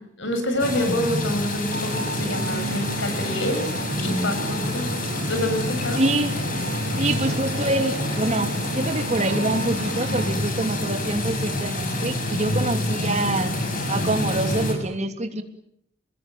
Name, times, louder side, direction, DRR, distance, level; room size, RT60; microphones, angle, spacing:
voice 1, 0.0-3.7 4.0-4.9 5.3-6.0, left 1 dB, 70° left, 7 dB, 7.3 m, -27 dB
sound 1, 0.6-14.7, left 1 dB, 45° left, 7.2 m, -27 dB
sound 2, 1.7-10.3, right 2 dB, 60° right, 2.8 m, -34 dB
voice 2, 5.9-6.3 7.0-13.5 13.9-15.4, right 2 dB, 35° right, 6 dB, 2.9 m, -25 dB
28.0 x 21.0 x 9.3 m, 0.75 s
head